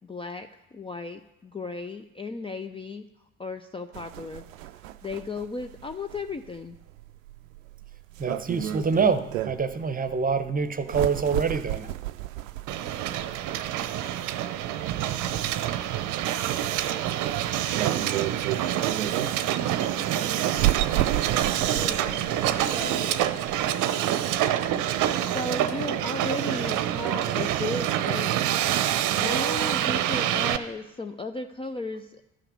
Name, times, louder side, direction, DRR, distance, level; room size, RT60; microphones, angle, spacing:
voice 1, 0.0-3.1 3.4-4.7 5.0-6.8 21.6-22.3 22.7-23.4 25.2-28.4 29.2-32.2, left 3 dB, 15° left, 7 dB, 0.5 m, -35 dB
sound 1, 3.9-23.8, right 14 dB, 75° right, 0.5 m, -34 dB
voice 2, 8.2-11.9, right 5 dB, 20° right, 11 dB, 1.0 m, -26 dB
Hiss, 12.7-30.6, right 11 dB, 50° right, 0.8 m, -26 dB
sound 2, 19.1-19.8 20.1-20.9 21.5-22.2 22.6-23.1 23.5-25.0 25.3-26.7 28.3-28.7 29.2-30.2 30.5-31.0, left 4 dB, 55° left, 1.7 m, -50 dB
13.0 x 5.8 x 8.2 m, 0.91 s
figure-of-eight pair, 55°, 40 cm